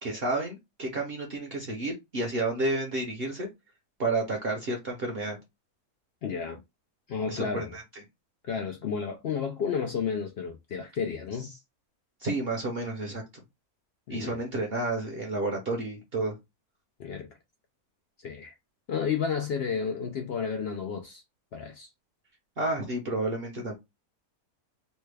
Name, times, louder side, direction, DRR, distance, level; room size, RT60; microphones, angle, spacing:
voice 1, 0.0-3.5 4.0-5.4 7.3-7.8 12.2-13.2 14.1-16.4 22.6-23.7, right 2 dB, 50° right, 0.8 m, -31 dB
voice 2, 6.2-6.6 7.1-7.7 8.4-11.5 14.1-14.4 17.0-17.3 18.2-18.5 18.9-21.2 21.5-21.9, left 6 dB, 75° left, 0.5 m, -32 dB
3.1 x 2.2 x 3.2 m
omnidirectional pair, 1.6 m